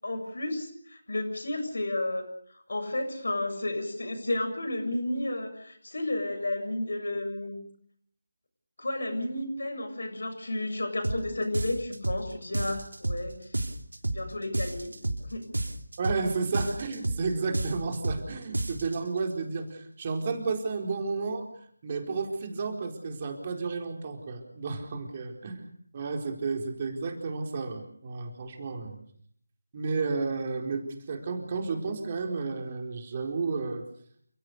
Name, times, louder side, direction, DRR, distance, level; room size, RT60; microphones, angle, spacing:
voice 1, 0.0-2.3 2.5-7.6 8.8-13.5 14.1-14.9 15.3-15.4, left 1 dB, 65° left, 6 dB, 7.4 m, -32 dB
sound 1, 11.0-11.2 11.5-12.2 12.5-13.2 13.5-14.2 14.5-15.2 15.5-16.2 16.5-17.2 17.5-18.2 18.5-19.0, right 2 dB, 75° right, 3.3 m, -30 dB
voice 2, 16.0-21.5 21.8-25.7 25.9-29.0 29.7-33.8, right 4 dB, 30° right, 3 dB, 4.4 m, -32 dB
29.5 x 17.5 x 7.0 m, 0.62 s
figure-of-eight pair, 160°, 0 cm